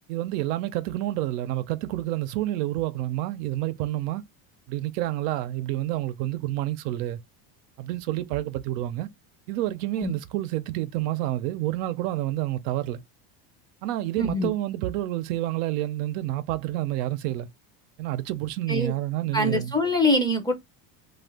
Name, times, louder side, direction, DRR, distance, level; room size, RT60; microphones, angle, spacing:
voice 1, 0.1-4.2 4.7-7.2 7.8-9.1 9.5-13.0 13.8-17.5 18.0-19.8, right 15 dB, 85° right, 0.6 m, -29 dB
voice 2, 14.2-14.5 18.7-18.9 19.3-20.5, left 1 dB, 10° left, 0.4 m, -23 dB
2.5 x 2.3 x 3.4 m
supercardioid pair, 125°, 46 cm